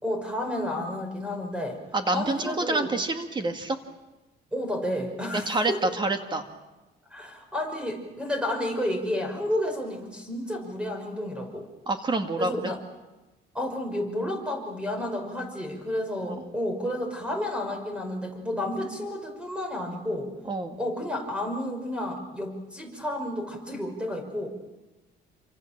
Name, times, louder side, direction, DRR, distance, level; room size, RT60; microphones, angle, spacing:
voice 1, 0.0-1.8 2.1-2.9 4.5-5.8 7.1-11.7 12.4-12.8 13.5-20.3 20.8-24.5, left 1 dB, 5° right, 4 dB, 5.5 m, -31 dB
voice 2, 1.9-3.8 5.3-6.4 11.9-12.5 16.3-16.5 20.5-20.8, right 2 dB, 25° right, 7 dB, 2.0 m, -27 dB
28.0 x 25.5 x 7.5 m, 1.1 s
cardioid pair, 140°, 18 cm